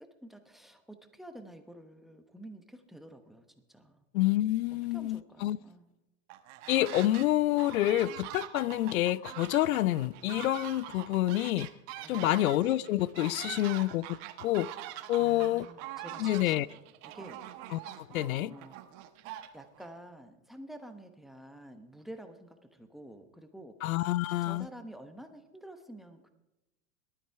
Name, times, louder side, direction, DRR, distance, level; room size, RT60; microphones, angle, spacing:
voice 1, 0.2-4.0 4.9-6.0 12.0-12.5 13.3-13.5 15.2-16.8 17.1-17.4 17.8-18.8 19.5-24.1 24.4-26.3, right 1 dB, ahead, 1.0 m, -49 dB
voice 2, 4.1-5.6 6.7-11.7 12.1-14.7 15.1-15.7 16.2-16.7 17.7-18.5 23.8-24.7, left 15 dB, 85° left, 0.6 m, -28 dB
sound 1, 6.3-7.3 7.6-19.9, right 13 dB, 45° right, 1.4 m, -44 dB
18.5 x 12.5 x 4.7 m
supercardioid pair, 140°, 41 cm